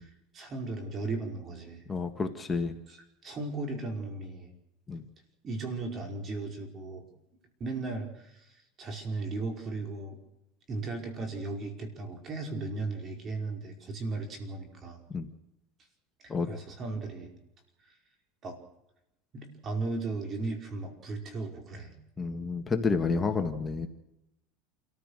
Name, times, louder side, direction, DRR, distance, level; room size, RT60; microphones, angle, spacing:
voice 1, 0.0-1.8 2.9-3.0 3.2-4.5 5.4-7.1 7.6-10.2 10.7-15.0 16.2-17.3 17.9-18.0 18.4-18.6 19.3-21.9, right 3 dB, 35° right, 3 dB, 5.1 m, -36 dB
voice 2, 1.9-2.7 4.9-5.0 15.1-15.3 16.3-16.5 22.2-23.9, left 4 dB, 20° left, 5 dB, 1.8 m, -30 dB
28.0 x 15.0 x 6.6 m, 0.85 s
supercardioid pair, 120°, 0 cm